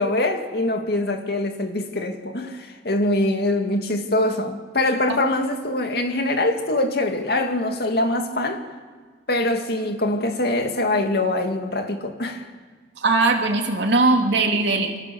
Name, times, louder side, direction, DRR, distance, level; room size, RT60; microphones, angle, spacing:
voice 1, 0.0-8.6 9.3-12.4, left 1 dB, 60° left, 2.3 m, -23 dB
voice 2, 13.0-15.0, right 3 dB, 75° right, 2.8 m, -19 dB
27.0 x 24.5 x 7.1 m
head